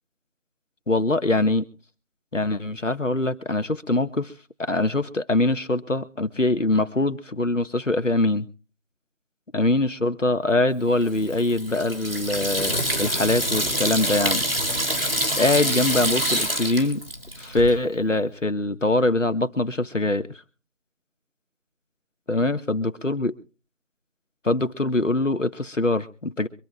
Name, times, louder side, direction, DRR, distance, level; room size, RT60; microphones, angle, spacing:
voice 1, 0.9-1.7 2.3-4.3 4.6-8.5 9.5-14.4 15.4-17.0 17.4-20.3 22.3-23.4 24.4-26.5, left 2 dB, 85° left, 10 dB, 1.7 m, -23 dB
Water tap faucet / Sink (filling or washing), 11.0-17.8, equal, 50° right, 3.1 m, -26 dB
25.0 x 14.0 x 2.4 m, 0.37 s
figure-of-eight pair, 180°, 37 cm